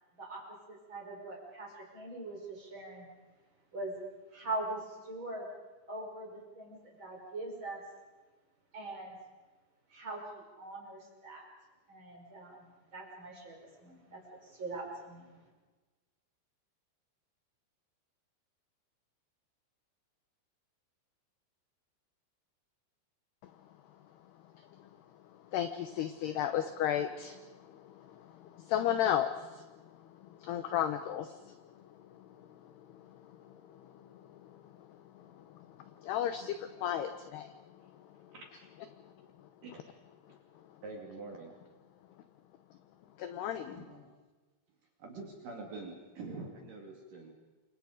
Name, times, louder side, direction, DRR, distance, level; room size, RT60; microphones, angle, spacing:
voice 1, 0.2-3.1 3.7-4.0 4.3-5.5 5.9-7.8 8.7-9.2 9.9-11.5 11.9-12.7 12.9-15.4, right 2 dB, 25° right, -1 dB, 5.6 m, -42 dB
voice 2, 25.5-27.4 28.0-28.1 28.6-29.6 30.4-31.5 34.1-34.2 36.0-37.5 43.2-43.8, left 10 dB, 75° left, 9 dB, 2.5 m, -33 dB
voice 3, 40.8-41.5 43.7-44.1 45.0-47.3, right 3 dB, 50° right, 1 dB, 3.6 m, -45 dB
29.0 x 25.5 x 5.1 m, 1.3 s
omnidirectional pair, 5.8 m